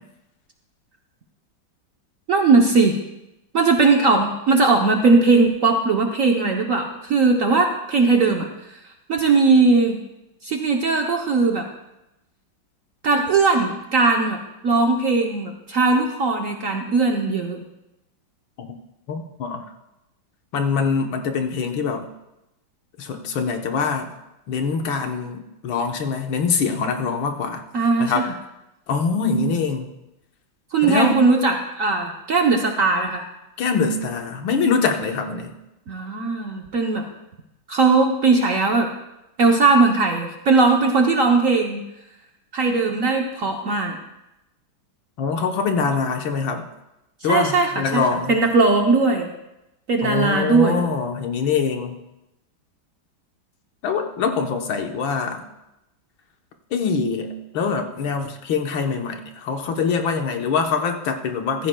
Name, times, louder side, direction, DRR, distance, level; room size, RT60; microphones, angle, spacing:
voice 1, 2.3-3.0 3.5-8.8 9.1-10.0 10.4-11.6 13.0-14.4 14.6-17.6 27.7-28.3 30.7-33.2 35.9-37.1 37.7-38.9 39.4-41.8 42.5-44.0 47.2-49.3 49.9-50.8, right 3 dB, 55° right, 2 dB, 1.0 m, -19 dB
voice 2, 19.1-19.6 20.5-22.1 23.0-24.1 24.5-27.6 28.0-28.3 28.9-29.9 30.8-31.2 33.6-35.5 45.2-46.7 47.2-48.3 50.0-52.0 53.8-55.4 56.7-61.7, left 5 dB, 75° left, 4 dB, 1.8 m, -24 dB
15.0 x 14.5 x 2.2 m, 0.92 s
omnidirectional pair, 2.2 m